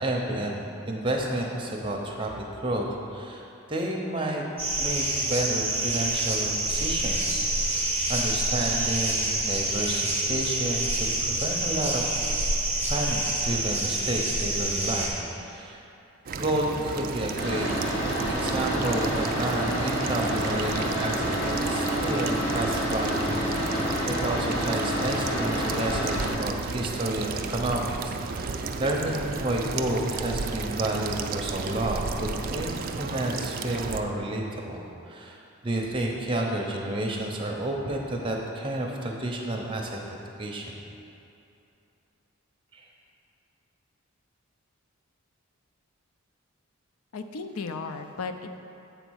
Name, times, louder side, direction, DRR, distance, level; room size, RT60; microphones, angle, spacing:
voice 1, 0.0-4.4 4.8-12.2 12.9-15.8 16.4-17.7 18.3-34.8 35.1-40.8 42.7-42.8, right 1 dB, 25° right, 0 dB, 0.7 m, -31 dB
sound 1, 4.6-15.1, right 1 dB, 10° left, 1.2 m, -27 dB
sound 2, 16.3-34.0, right 4 dB, 40° right, 0.3 m, -33 dB
sound 3, 17.4-26.3, equal, 45° left, 1.5 m, -28 dB
voice 2, 47.1-48.6, left 4 dB, 75° left, 7 dB, 0.5 m, -35 dB
8.1 x 4.1 x 6.3 m, 2.8 s
head